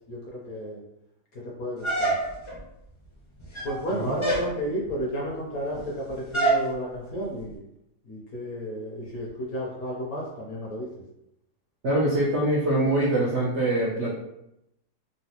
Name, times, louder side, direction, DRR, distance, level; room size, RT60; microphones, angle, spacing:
voice 1, 0.1-0.8 1.3-2.2 3.6-7.6 8.0-10.9, equal, 65° left, -3 dB, 1.0 m, -32 dB
sound 1, 1.8-2.6 3.4-3.8 4.2-4.5 6.3-6.7, right 2 dB, 40° left, 0.4 m, -25 dB
voice 2, 11.8-14.1, right 1 dB, 70° right, -5 dB, 0.6 m, -24 dB
3.9 x 2.1 x 2.8 m, 0.83 s
omnidirectional pair, 2.0 m